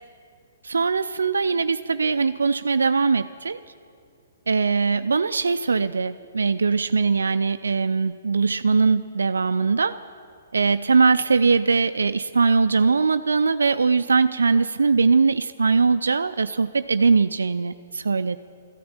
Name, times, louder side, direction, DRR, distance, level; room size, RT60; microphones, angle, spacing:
voice 1, 0.6-3.6 4.5-10.0 10.5-18.4, right 4 dB, 80° right, 10 dB, 0.4 m, -21 dB
13.5 x 11.5 x 8.9 m, 2.3 s
figure-of-eight pair, 125°, 0 cm